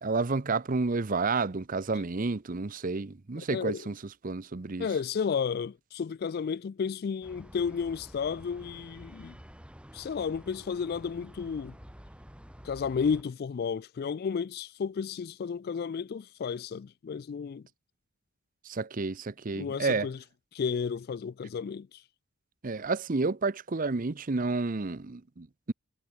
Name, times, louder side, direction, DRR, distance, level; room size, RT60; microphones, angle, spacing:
voice 1, 0.0-4.0 4.2-4.9 18.6-20.1 22.6-25.7, right 3 dB, 40° right, 0.7 m, -30 dB
voice 2, 3.5-3.8 4.8-9.4 9.9-11.7 12.6-17.6 19.6-20.2 20.5-22.0, left 6 dB, 50° left, 0.3 m, -32 dB
sound 1, 7.2-13.2, equal, 5° right, 6.9 m, -50 dB
head